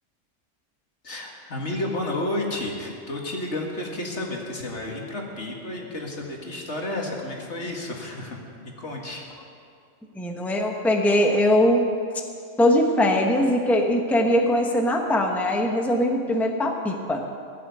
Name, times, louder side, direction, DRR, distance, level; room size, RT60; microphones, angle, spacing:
voice 1, 1.0-8.4 8.6-9.2, left 1 dB, 65° left, 0 dB, 2.3 m, -31 dB
voice 2, 10.1-11.8 12.6-17.2, left 1 dB, ahead, 2 dB, 1.1 m, -21 dB
16.0 x 7.8 x 9.4 m, 2.4 s
omnidirectional pair, 1.3 m